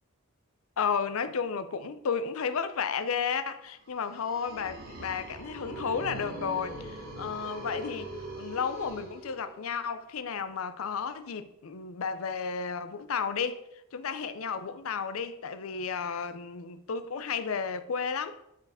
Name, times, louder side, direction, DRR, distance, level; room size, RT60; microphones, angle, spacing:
voice 1, 0.8-13.6 13.9-18.4, left 6 dB, 75° left, 0.5 m, -33 dB
sound 1, 3.9-9.8, right 1 dB, 45° right, 1.9 m, -42 dB
7.2 x 4.6 x 4.8 m
head